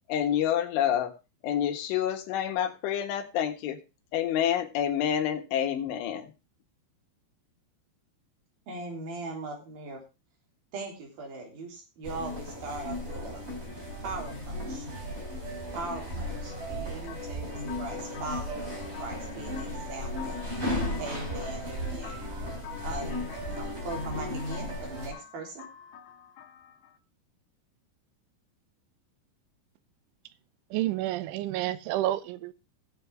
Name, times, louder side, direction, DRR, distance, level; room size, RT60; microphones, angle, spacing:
voice 1, 0.1-1.1 1.4-3.8 4.1-6.3, left 10 dB, 85° left, 4.0 m, -28 dB
voice 2, 8.7-10.0 10.7-13.4 14.0-14.9 15.7-20.4 21.0-22.1 22.8-23.1 23.5-25.7, right 3 dB, 55° right, 5.0 m, -40 dB
sound 1, 12.0-25.1, left 1 dB, 15° right, 2.8 m, -35 dB
sound 2, 17.1-27.0, left 10 dB, 65° left, 3.0 m, -48 dB
voice 3, 30.7-32.5, right 14 dB, 90° right, 3.2 m, -29 dB
18.0 x 7.2 x 3.5 m
omnidirectional pair, 5.4 m